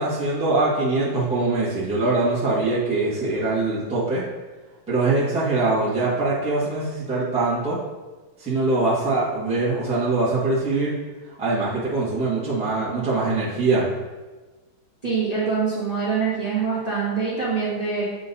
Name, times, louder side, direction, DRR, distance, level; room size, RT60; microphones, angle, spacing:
voice 1, 0.0-4.2 4.9-7.8 8.4-10.9 11.4-13.9, right 3 dB, 5° right, -8 dB, 1.1 m, -23 dB
voice 2, 15.0-18.0, right 5 dB, 20° right, -9 dB, 1.2 m, -24 dB
8.3 x 2.9 x 4.1 m, 1.2 s
omnidirectional pair, 2.2 m